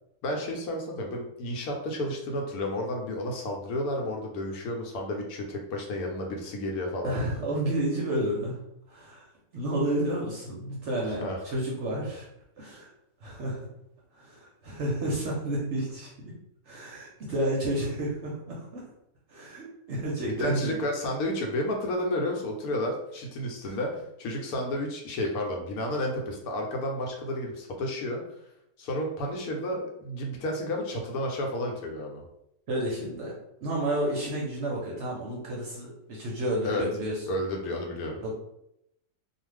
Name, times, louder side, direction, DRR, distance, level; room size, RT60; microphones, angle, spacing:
voice 1, 0.2-7.2 11.0-11.4 20.2-28.2 28.8-32.2 36.6-36.8 37.3-38.2, left 1 dB, 75° left, 1 dB, 1.1 m, -31 dB
voice 2, 7.0-8.6 8.9-9.3 9.5-12.3 12.6-12.9 13.2-13.7 14.2-16.3 16.7-18.9 19.3-20.8 23.6-23.8 32.7-33.3 33.6-37.2 38.2-38.4, right 1 dB, 60° right, -3 dB, 0.8 m, -31 dB
2.4 x 2.4 x 3.2 m, 0.80 s
omnidirectional pair, 1.6 m